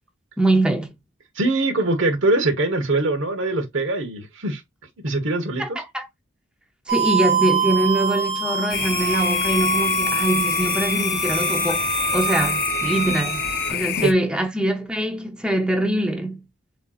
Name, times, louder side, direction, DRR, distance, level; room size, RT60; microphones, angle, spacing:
voice 1, 0.4-0.9 5.6-6.1 6.9-16.4, right 1 dB, 5° right, 0.7 m, -23 dB
voice 2, 1.4-4.6 5.0-5.8 14.0-14.1, right 2 dB, 70° right, 1.2 m, -22 dB
sound 1, 6.9-13.7, right 6 dB, 50° right, 1.7 m, -25 dB
sound 2, 8.7-14.1, left 10 dB, 50° left, 0.4 m, -26 dB
6.8 x 2.8 x 2.4 m
head